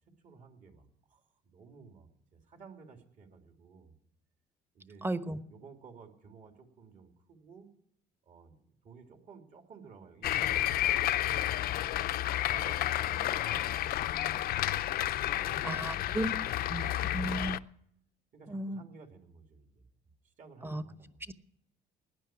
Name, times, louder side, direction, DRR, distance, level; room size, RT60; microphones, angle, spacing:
voice 1, 0.2-3.9 4.7-5.1 5.5-7.7 8.2-11.9 12.5-16.4 16.8-17.6 18.3-19.9 20.2-21.3, right 5 dB, 50° right, 4 dB, 3.1 m, -55 dB
voice 2, 5.0-5.4 15.6-17.6 18.5-18.8 20.6-20.8 21.3-21.4, right 1 dB, 15° right, 11 dB, 1.0 m, -35 dB
sound 1, 10.2-17.6, left 13 dB, 65° left, 0.6 m, -31 dB
17.5 x 10.5 x 6.1 m, 0.73 s
cardioid pair, 110°, 17 cm